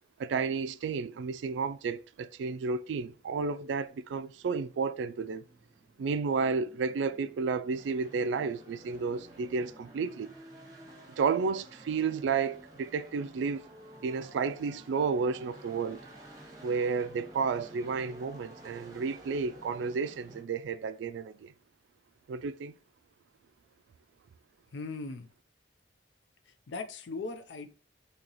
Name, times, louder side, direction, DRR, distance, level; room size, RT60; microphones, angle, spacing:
voice 1, 0.2-5.4 6.0-10.3 11.2-13.7 14.0-16.0 16.6-21.5 22.3-22.7, right 5 dB, 85° right, 0.3 m, -32 dB
sound 1, 4.0-20.4, right 1 dB, 20° right, 0.8 m, -52 dB
voice 2, 24.7-25.3 26.5-27.7, left 3 dB, 85° left, 0.5 m, -39 dB
3.9 x 2.8 x 2.9 m
head